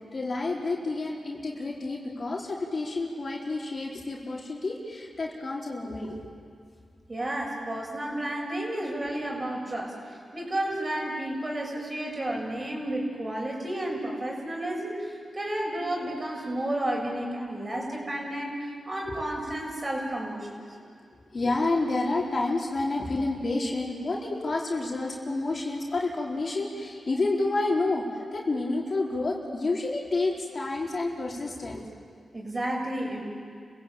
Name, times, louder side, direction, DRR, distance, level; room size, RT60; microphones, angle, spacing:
voice 1, 0.1-6.4 19.0-19.1 21.3-31.8, left 2 dB, 50° left, -2 dB, 4.4 m, -29 dB
voice 2, 7.1-20.6 32.3-33.2, right 1 dB, 35° right, -1 dB, 7.2 m, -32 dB
29.5 x 16.0 x 8.9 m, 2.3 s
cardioid pair, 50°, 0 cm